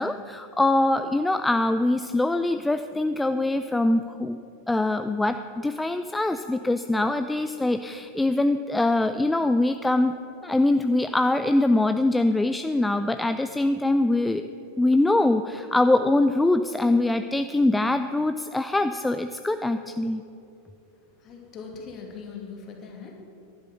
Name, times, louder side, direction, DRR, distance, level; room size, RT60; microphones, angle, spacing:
voice 1, 0.0-4.4 4.7-10.1 10.4-14.5 14.8-20.2, left 2 dB, 5° left, 9 dB, 0.4 m, -23 dB
voice 2, 21.2-23.1, left 5 dB, 30° left, 2 dB, 2.2 m, -40 dB
11.0 x 11.0 x 6.5 m, 2.7 s
figure-of-eight pair, 90°, 0 cm